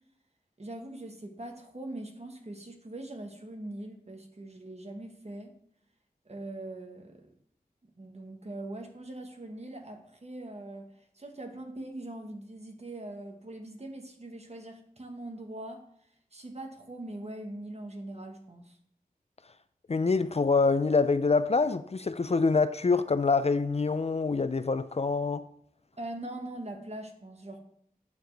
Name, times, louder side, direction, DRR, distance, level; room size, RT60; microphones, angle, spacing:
voice 1, 0.6-5.6 6.2-7.3 8.0-15.9 16.3-18.8 25.9-27.6, right 1 dB, 45° right, 1.4 m, -42 dB
voice 2, 19.9-25.4, left 4 dB, 45° left, 0.4 m, -25 dB
9.4 x 6.9 x 3.4 m
wide cardioid pair, 65°, 16 cm